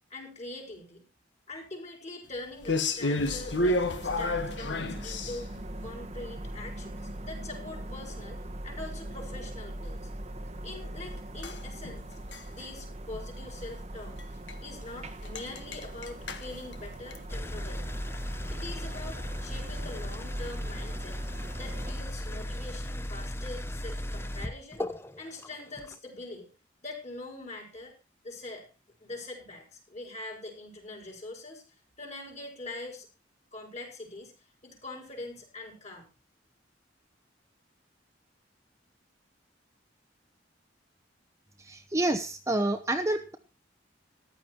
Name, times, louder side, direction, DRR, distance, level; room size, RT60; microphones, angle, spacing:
voice 1, 0.1-1.0 1.5-5.5 5.8-10.1 10.6-12.2 12.5-18.0 18.5-21.2 21.6-24.8 25.2-26.5 26.8-28.0 28.2-28.7 29.0-31.6 32.0-33.1 33.5-34.3 34.6-36.1, left 2 dB, 40° left, 2 dB, 4.9 m, -43 dB
sound 1, 2.6-5.6 11.4-12.7 13.0-13.2 13.5-13.7 14.2-14.3 14.5-14.6 14.9-15.0 15.2-17.2, left 2 dB, 70° left, 1.5 m, -31 dB
sound 2, 3.2-21.9, right 1 dB, 35° right, 1.0 m, -41 dB
sound 3, 17.3-25.9, left 1 dB, 15° left, 0.7 m, -36 dB
voice 2, 41.6-43.3, right 1 dB, 15° right, 6 dB, 0.8 m, -28 dB
14.0 x 11.0 x 4.4 m, 0.32 s
head